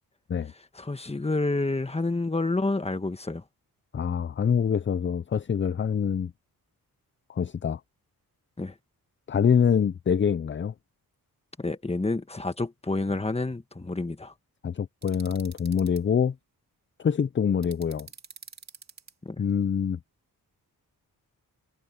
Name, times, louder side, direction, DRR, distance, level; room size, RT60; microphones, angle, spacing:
voice 1, 0.7-3.4 8.6-8.7 11.6-14.3 19.2-19.4, left 2 dB, 15° left, 1.4 m, -29 dB
voice 2, 3.9-6.3 7.3-7.8 9.3-10.7 14.6-16.3 17.0-18.1 19.4-20.0, left 7 dB, 30° left, 0.5 m, -25 dB
sound 1, 15.0-16.0 17.6-19.1, right 5 dB, 45° right, 2.4 m, -47 dB
cardioid pair, 85°, 37 cm